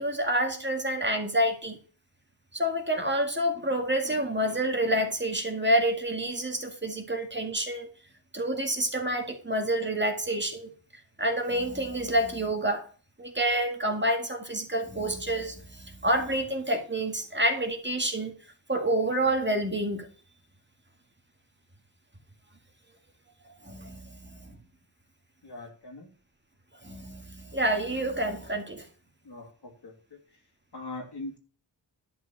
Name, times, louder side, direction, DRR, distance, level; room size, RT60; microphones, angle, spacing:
voice 1, 0.0-1.8 2.5-7.9 8.3-10.7 11.2-12.8 13.2-18.3 18.7-20.1 23.7-24.5 26.8-28.9, right 1 dB, 25° right, 1.9 m, -28 dB
voice 2, 25.4-26.1 29.2-30.2 30.7-31.4, left 2 dB, 65° left, 2.8 m, -41 dB
11.0 x 4.7 x 7.2 m
wide cardioid pair, 75°, 43 cm